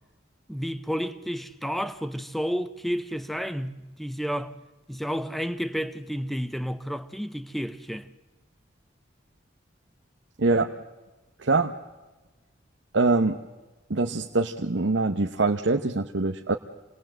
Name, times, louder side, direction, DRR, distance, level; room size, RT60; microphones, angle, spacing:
voice 1, 0.5-4.5 4.9-8.1, equal, ahead, 0.8 m, -31 dB
voice 2, 10.4-10.7 11.4-11.7 12.9-13.4 13.9-16.5, right 3 dB, 75° right, 0.9 m, -24 dB
27.5 x 20.5 x 7.7 m
head